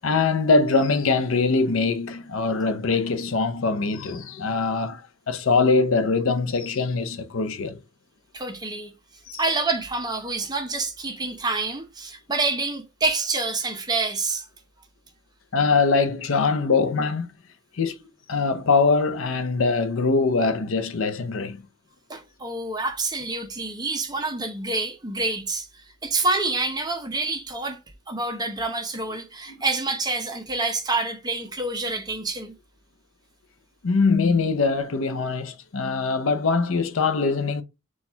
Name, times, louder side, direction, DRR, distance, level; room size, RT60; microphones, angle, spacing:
voice 1, 0.0-7.8 9.3-9.4 15.5-17.3 17.8-18.0 18.3-21.6 33.8-37.6, left 4 dB, 75° left, 0.6 m, -22 dB
voice 2, 8.3-8.9 9.4-14.5 22.1-27.8 28.1-32.5, right 3 dB, 20° right, 0.6 m, -27 dB
4.2 x 2.4 x 4.3 m
head